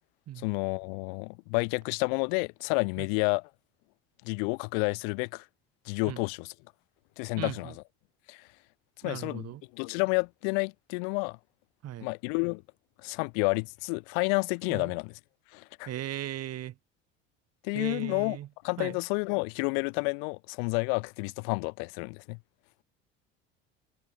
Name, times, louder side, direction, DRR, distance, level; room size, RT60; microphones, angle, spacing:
voice 1, 0.4-3.5 4.2-5.4 5.9-6.5 7.2-7.8 8.3-8.5 9.0-11.4 12.0-12.6 13.0-15.2 15.5-15.9 17.6-18.4 18.6-22.4, left 40 dB or more, 75° left, 1.0 m, -30 dB
voice 2, 7.4-7.7 9.0-9.6 11.8-12.1 14.7-14.9 15.9-16.7 17.7-18.5 18.8-19.0, right 13 dB, 55° right, 7.3 m, -37 dB
hypercardioid pair, 75°, 29 cm